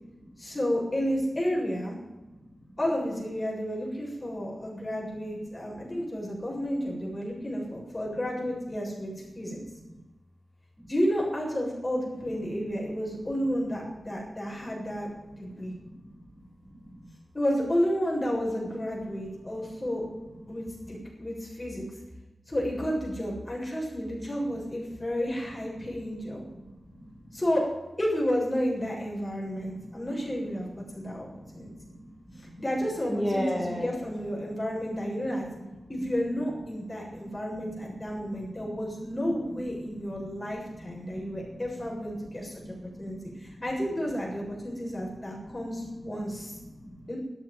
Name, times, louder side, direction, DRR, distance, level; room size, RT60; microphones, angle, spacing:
voice 1, 0.4-2.0 2.8-9.6 10.9-15.7 17.3-20.0 20.5-22.0 22.5-26.5 27.3-27.6 28.0-30.7 30.9-31.7 32.3-35.5 35.9-46.6 47.1-47.2, equal, 25° left, -3 dB, 7.1 m, -31 dB
voice 2, 15.5-16.1 16.7-17.0 26.6-26.7 29.8-30.0 30.9-32.6 33.1-33.9 37.2-37.3 38.6-38.8 40.3-40.5 40.8-41.6 42.5-43.4 45.4-45.5 46.6-47.0, equal, ahead, -3 dB, 3.2 m, -37 dB
13.5 x 8.9 x 9.4 m, 1.1 s
wide cardioid pair, 90°, 0 cm